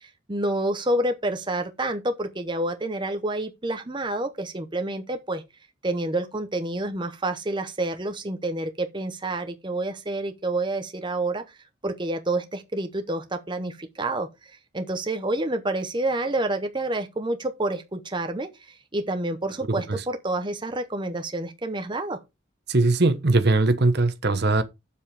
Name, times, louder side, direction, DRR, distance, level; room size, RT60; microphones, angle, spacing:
voice 1, 0.0-5.4 5.8-11.4 11.8-14.3 14.7-22.2, right 2 dB, 20° right, 0.9 m, -28 dB
voice 2, 19.7-20.0 22.7-24.6, right 2 dB, 55° right, 1.0 m, -21 dB
7.5 x 7.1 x 4.8 m
head